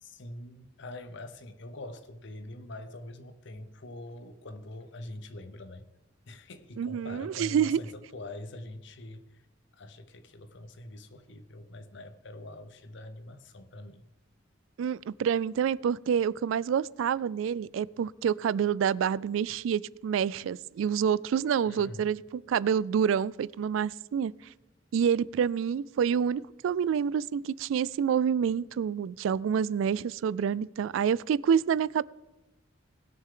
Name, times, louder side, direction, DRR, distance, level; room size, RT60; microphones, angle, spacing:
voice 1, 0.0-5.9 6.3-9.5 9.7-14.1 21.7-22.1, left 1 dB, 65° left, 0.8 m, -44 dB
voice 2, 6.8-7.8 14.8-24.3 24.9-32.0, right 7 dB, 80° right, 0.3 m, -27 dB
19.5 x 6.6 x 3.7 m
head